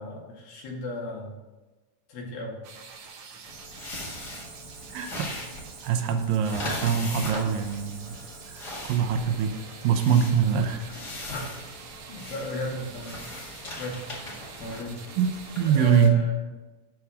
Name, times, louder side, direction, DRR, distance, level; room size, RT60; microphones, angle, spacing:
voice 1, 0.0-1.4 2.1-2.6 11.3-11.4 12.1-13.2 13.8-14.1 14.6-15.0 15.6-16.5, left 2 dB, 85° left, -2 dB, 4.0 m, -34 dB
sound 1, 2.6-16.1, right 5 dB, 65° right, 2.1 m, -46 dB
sound 2, 3.5-16.0, left 1 dB, 35° left, 2.1 m, -39 dB
voice 2, 4.9-5.3 5.8-8.2 8.5-9.6 9.8-11.0 15.2-15.3 15.6-16.2, right 8 dB, 80° right, 7 dB, 2.4 m, -24 dB
12.5 x 4.8 x 6.3 m, 1.2 s
omnidirectional pair, 4.1 m